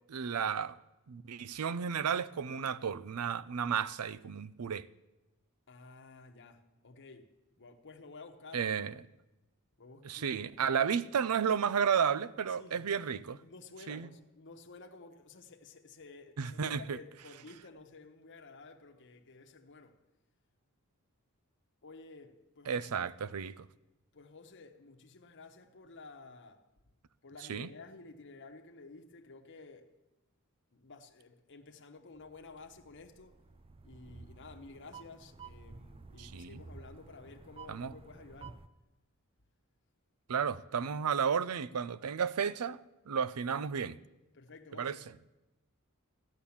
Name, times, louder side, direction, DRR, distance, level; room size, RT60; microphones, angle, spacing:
voice 1, 0.1-0.8 1.1-4.9 8.5-8.9 10.0-13.4 13.9-14.1 16.4-17.0 22.7-23.7 27.5-27.7 36.2-36.6 37.7-37.9 40.3-44.0 44.8-44.9, right 7 dB, 85° right, 0.5 m, -33 dB
voice 2, 5.7-8.7 9.8-11.1 12.4-12.9 13.1-20.0 21.8-23.1 24.1-26.7 27.2-30.0 30.7-33.4 33.8-38.6 44.3-45.1, left 3 dB, 55° left, 1.1 m, -53 dB
sound 1, 32.1-38.7, right 4 dB, 25° right, 0.4 m, -52 dB
14.5 x 10.0 x 7.1 m
head